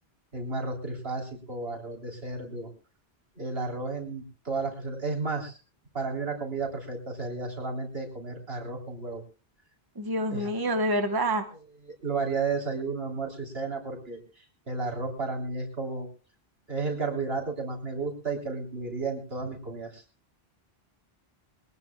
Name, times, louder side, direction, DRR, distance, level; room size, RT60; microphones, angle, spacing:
voice 1, 0.3-2.7 3.4-5.6 5.9-9.2 10.3-10.5 12.0-16.1 16.7-20.0, right 3 dB, 70° right, 0 dB, 3.9 m, -33 dB
voice 2, 9.9-11.4, right 1 dB, 20° right, 6 dB, 1.2 m, -27 dB
22.5 x 19.0 x 2.3 m, 0.34 s
omnidirectional pair, 1.1 m